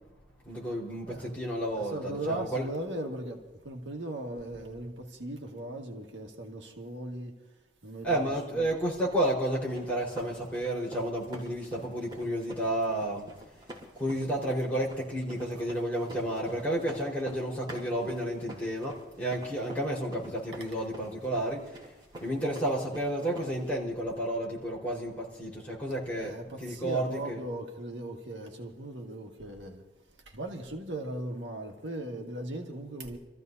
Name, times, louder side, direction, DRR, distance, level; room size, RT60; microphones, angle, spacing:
voice 1, 0.4-2.6 8.0-13.3 13.9-21.8 22.2-27.4, right 1 dB, 10° left, 4.5 m, -31 dB
voice 2, 1.1-7.3 7.8-8.7 15.5-15.6 26.1-29.8 30.3-33.2, right 1 dB, 80° right, 1.7 m, -38 dB
sound 1, 9.1-23.7, equal, 25° right, 4.2 m, -47 dB
28.5 x 14.5 x 2.7 m
head